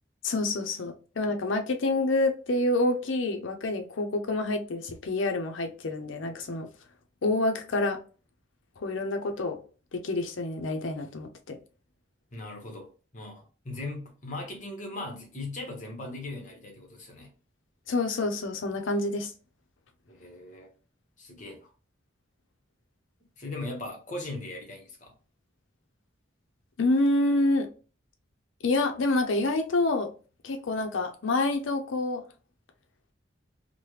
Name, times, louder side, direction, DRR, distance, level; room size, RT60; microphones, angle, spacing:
voice 1, 0.2-6.7 7.2-8.0 8.8-9.6 9.9-11.6 17.9-19.3 26.8-27.7 28.6-30.1 30.4-32.2, left 2 dB, 80° left, 0.5 m, -27 dB
voice 2, 12.3-17.3 20.1-20.7 21.2-21.7 23.4-25.1, left 2 dB, 40° left, 0.9 m, -39 dB
3.2 x 2.1 x 3.1 m
head